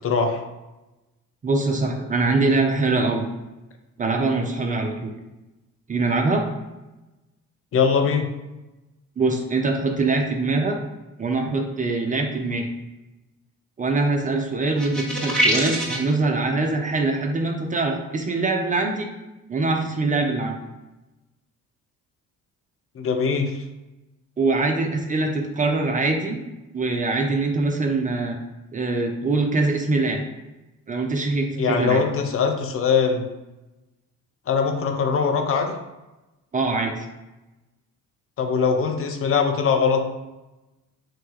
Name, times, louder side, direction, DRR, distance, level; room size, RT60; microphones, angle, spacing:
voice 1, 0.0-0.4 7.7-8.3 23.0-23.5 31.6-33.2 34.5-35.8 38.4-40.0, left 5 dB, 30° left, 4 dB, 0.5 m, -21 dB
voice 2, 1.4-3.3 4.0-5.1 5.9-6.5 9.2-10.8 11.2-12.7 13.8-19.1 19.5-20.6 24.4-26.4 26.7-28.4 28.7-30.2 30.9-32.0 36.5-37.1, right 3 dB, 20° right, 2 dB, 0.4 m, -23 dB
sound 1, 14.8-16.1, equal, ahead, 0.8 m, -23 dB
3.0 x 2.2 x 3.2 m, 1.0 s
figure-of-eight pair, 45°, 46 cm